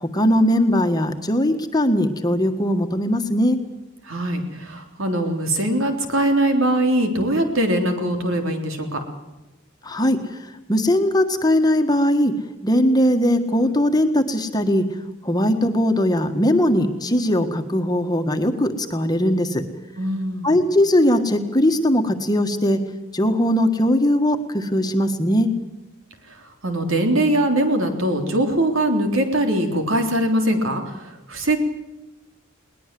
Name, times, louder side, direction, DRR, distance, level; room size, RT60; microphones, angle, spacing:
voice 1, 0.0-3.6 9.8-10.4 10.7-12.3 12.6-14.8 15.2-19.6 20.4-22.8 23.1-25.5, left 1 dB, 20° left, 6 dB, 1.6 m, -19 dB
voice 2, 4.0-9.0 20.0-20.6 26.6-31.6, right 1 dB, 75° right, 5 dB, 3.6 m, -21 dB
21.5 x 19.5 x 7.7 m, 1.0 s
head